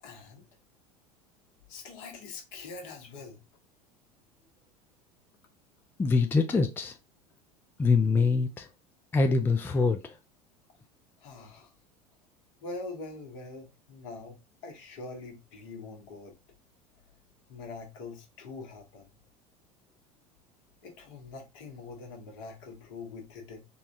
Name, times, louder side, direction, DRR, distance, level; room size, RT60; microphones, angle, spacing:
voice 1, 0.0-0.5 1.7-3.4 11.2-11.7 12.6-16.3 17.5-19.1 20.8-23.7, left 3 dB, 60° left, 1.1 m, -43 dB
voice 2, 6.0-6.9 7.8-8.7 9.1-10.1, left 4 dB, 10° left, 0.4 m, -24 dB
4.1 x 2.2 x 2.6 m
figure-of-eight pair, 75°, 20 cm